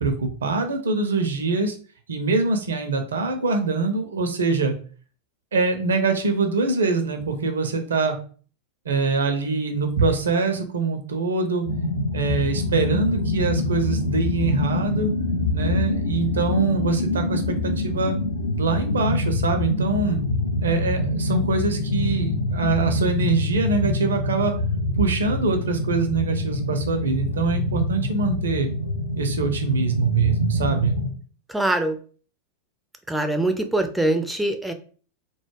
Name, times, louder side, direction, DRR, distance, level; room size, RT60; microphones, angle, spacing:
voice 1, 0.0-1.8 2.1-4.7 5.5-8.2 8.9-11.7 12.1-15.1 15.5-18.1 18.6-20.2 20.6-24.5 25.0-28.7 29.2-31.0, right 4 dB, 65° right, 6 dB, 0.5 m, -24 dB
sound 1, 11.7-31.1, left 2 dB, 75° left, 0.4 m, -25 dB
voice 2, 31.5-32.0 33.1-34.7, right 1 dB, 5° right, 5 dB, 0.3 m, -23 dB
2.2 x 2.0 x 3.2 m, 0.41 s
figure-of-eight pair, 90°, 0 cm